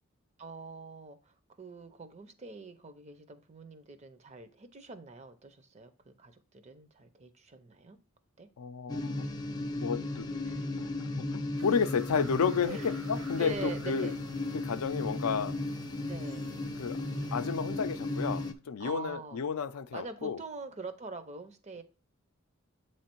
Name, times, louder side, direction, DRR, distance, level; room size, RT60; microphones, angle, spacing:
voice 1, 0.4-8.0 8.4-8.5 10.4-10.7 12.6-13.0 13.4-14.1 16.1-16.4 18.8-19.4 19.9-21.8, right 3 dB, 30° right, 0.5 m, -44 dB
voice 2, 8.6-9.2 9.7-10.3 10.8-10.9 11.2-14.1 14.5-15.6 16.8-17.0 17.3-20.4, left 6 dB, 85° left, 0.5 m, -32 dB
sound 1, 8.9-18.5, left 2 dB, 20° left, 0.4 m, -35 dB
sound 2, 11.6-18.5, right 3 dB, 80° right, 1.0 m, -51 dB
7.9 x 3.1 x 4.4 m
head